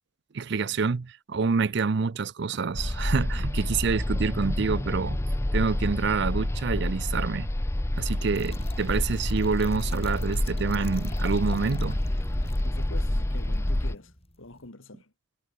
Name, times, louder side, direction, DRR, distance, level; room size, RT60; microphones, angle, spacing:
voice 1, 0.3-5.2 5.5-7.5 7.9-12.0, right 5 dB, 55° right, 0.5 m, -27 dB
sound 1, 2.8-14.0, left 1 dB, 15° left, 0.5 m, -28 dB
Trickle dribble / Fill (with liquid), 8.0-14.7, left 5 dB, 30° left, 7.9 m, -50 dB
voice 2, 12.6-15.1, left 2 dB, 75° left, 2.4 m, -45 dB
head